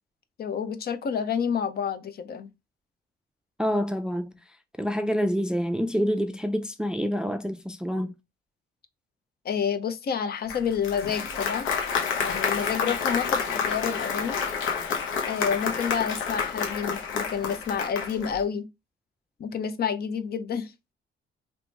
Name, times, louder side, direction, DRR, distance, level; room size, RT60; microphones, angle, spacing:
voice 1, 0.4-2.5 9.4-11.7 12.2-14.4 15.3-18.7 19.4-20.7, left 7 dB, 50° left, 0.6 m, -29 dB
voice 2, 3.6-4.4 4.8-8.1, equal, 5° right, 0.3 m, -27 dB
Applause, 10.5-18.4, left 6 dB, 85° left, 1.0 m, -29 dB
3.0 x 2.9 x 3.2 m
cardioid pair, 90°, 20 cm